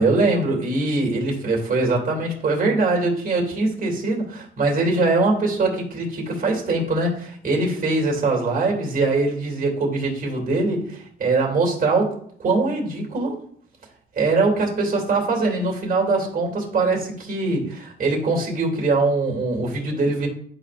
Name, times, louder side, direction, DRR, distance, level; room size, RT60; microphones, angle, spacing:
voice 1, 0.0-12.1 12.4-13.4 14.2-20.3, right 3 dB, 45° right, 0 dB, 2.8 m, -22 dB
11.0 x 5.0 x 2.5 m, 0.62 s
cardioid pair, 90°, 20 cm